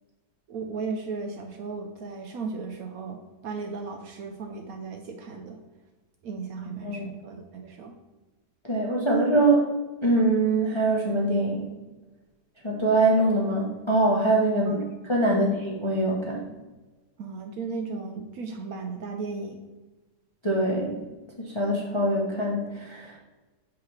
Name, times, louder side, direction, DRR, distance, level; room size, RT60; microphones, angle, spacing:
voice 1, 0.5-5.6 6.2-7.9 14.7-14.9 15.3-15.5 17.2-19.6, right 4 dB, 70° right, 4 dB, 0.9 m, -36 dB
voice 2, 8.6-9.7 10.0-11.7 12.6-14.8 15.1-16.4 20.4-21.0 21.4-23.2, right 2 dB, 30° left, -3 dB, 0.6 m, -23 dB
6.8 x 4.8 x 3.1 m, 1.2 s
omnidirectional pair, 1.8 m